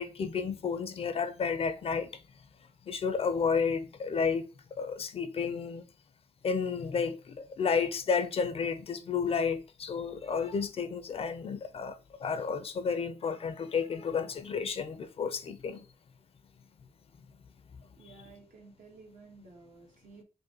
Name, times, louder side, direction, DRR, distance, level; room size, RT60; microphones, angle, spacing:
voice 1, 0.0-2.1 2.9-4.4 4.8-5.8 6.4-15.8, left 5 dB, 45° left, 0.4 m, -31 dB
voice 2, 17.9-20.2, right 3 dB, 85° right, 1.3 m, -54 dB
5.2 x 2.1 x 2.8 m
wide cardioid pair, 145°, 13 cm